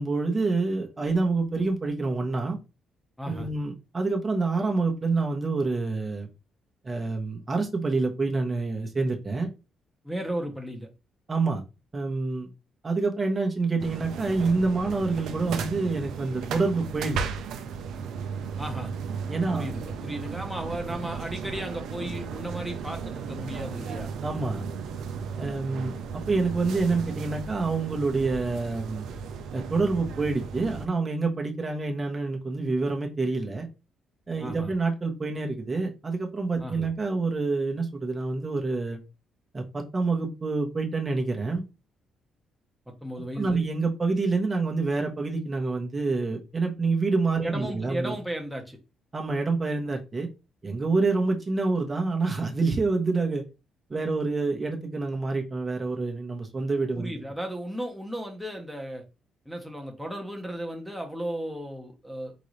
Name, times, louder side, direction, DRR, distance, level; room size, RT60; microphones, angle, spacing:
voice 1, 0.0-2.6 3.3-6.3 6.8-9.5 11.3-11.6 11.9-12.5 12.8-17.2 19.3-19.7 24.2-24.6 25.4-29.0 29.5-33.7 34.3-39.0 39.5-41.6 43.4-48.1 49.1-50.3 50.6-53.4 53.9-57.1, right 3 dB, 30° right, 1.0 m, -27 dB
voice 2, 10.0-10.9 18.6-18.9 19.5-24.1 34.4-34.7 36.6-36.9 42.9-43.6 47.4-48.8 57.0-59.0 59.5-62.3, right 1 dB, ahead, 1.0 m, -35 dB
sound 1, 13.8-30.9, right 6 dB, 80° right, 0.6 m, -35 dB
4.0 x 3.8 x 3.2 m
cardioid pair, 90°, 0 cm